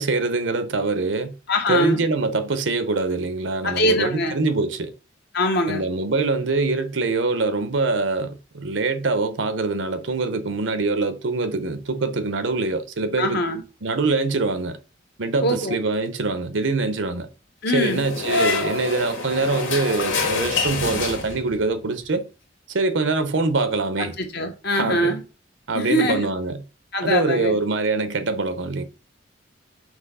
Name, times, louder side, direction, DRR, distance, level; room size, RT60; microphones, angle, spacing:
voice 1, 0.0-1.3 1.7-4.9 5.7-13.4 13.8-14.8 15.2-17.3 17.7-22.3 22.7-24.2 24.7-25.2 25.7-26.6 27.0-28.8, right 3 dB, 70° right, 0.8 m, -24 dB
voice 2, 1.5-2.0 3.6-4.4 5.3-5.8 13.2-13.6 15.4-15.7 17.6-18.0 24.0-25.2 25.7-26.3 26.9-27.6, left 1 dB, 55° left, 1.4 m, -23 dB
sound 1, 17.7-21.7, left 4 dB, 80° left, 2.0 m, -26 dB
6.1 x 3.0 x 5.5 m
head